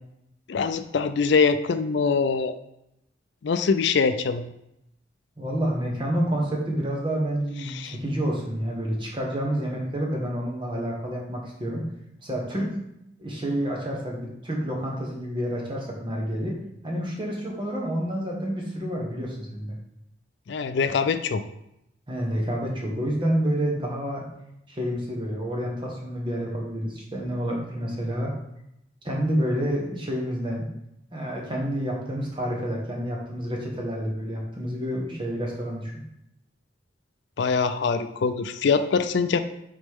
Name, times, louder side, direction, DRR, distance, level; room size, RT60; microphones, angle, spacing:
voice 1, 0.5-2.6 3.4-4.4 7.7-7.9 20.5-21.4 37.4-39.4, left 5 dB, 70° left, 10 dB, 0.4 m, -23 dB
voice 2, 5.4-11.8 12.2-12.7 13.2-16.5 16.8-19.7 22.1-24.2 24.7-28.3 29.0-30.7 31.1-35.9, equal, 25° right, -2 dB, 1.3 m, -28 dB
6.3 x 4.2 x 3.6 m, 0.81 s
head